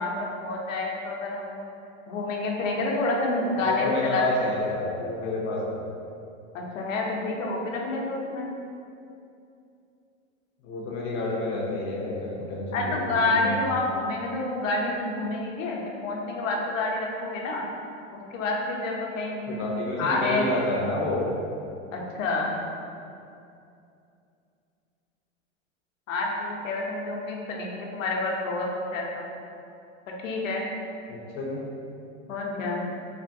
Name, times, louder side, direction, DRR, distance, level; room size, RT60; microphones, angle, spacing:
voice 1, 0.0-1.6 2.1-4.2 6.5-8.5 12.7-17.6 18.1-20.4 21.9-22.6 26.1-29.3 30.2-30.6 32.3-32.8, left 2 dB, 85° left, -1 dB, 0.6 m, -28 dB
voice 2, 3.6-5.8 10.6-13.6 19.5-21.3 31.1-31.6, left 2 dB, 35° left, -3 dB, 0.4 m, -29 dB
3.3 x 2.2 x 2.5 m, 2.6 s
hypercardioid pair, 110°, 38 cm